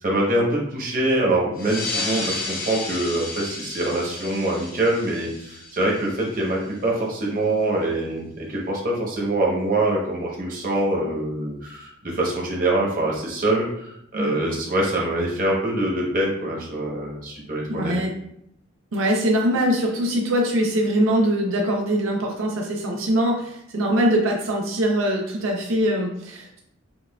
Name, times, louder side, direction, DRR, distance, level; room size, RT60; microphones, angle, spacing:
voice 1, 0.0-17.9, right 1 dB, 45° right, -3 dB, 0.9 m, -24 dB
sound 1, 1.6-6.6, left 3 dB, 45° left, 0.6 m, -32 dB
voice 2, 17.7-18.1 18.9-26.6, equal, 85° right, 0 dB, 0.5 m, -22 dB
5.5 x 2.3 x 2.3 m, 0.75 s
head